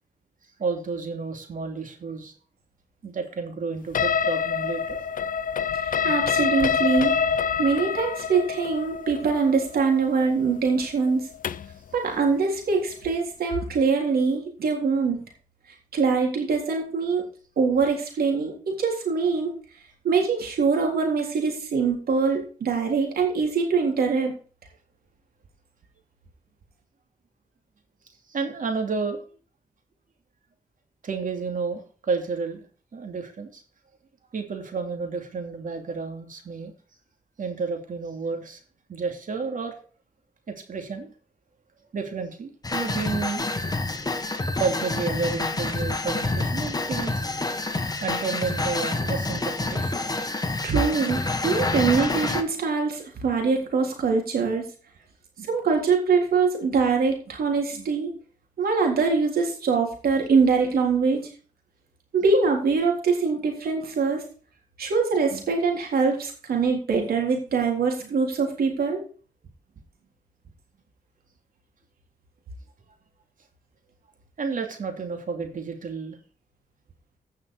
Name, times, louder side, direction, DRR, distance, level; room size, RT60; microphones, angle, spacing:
voice 1, 0.6-2.3 3.0-5.0 28.3-29.2 31.0-32.7 32.9-33.6 34.3-36.7 37.4-38.6 38.9-39.7 40.5-41.1 41.9-43.5 44.6-47.2 48.0-50.0 74.4-76.2, right 4 dB, 60° right, 4 dB, 2.8 m, -31 dB
sound 1, 3.9-11.8, left 7 dB, 60° left, 0.6 m, -26 dB
voice 2, 6.0-7.1 7.6-11.2 11.9-15.2 15.9-17.2 17.6-19.5 20.0-24.3 50.6-54.7 55.4-58.1 58.6-61.2 62.1-64.2 64.8-69.0, right 4 dB, 80° right, 1 dB, 3.6 m, -23 dB
sound 2, 42.6-52.4, left 2 dB, 25° left, 1.5 m, -28 dB
16.5 x 5.8 x 4.8 m, 0.42 s
cardioid pair, 60°, 15 cm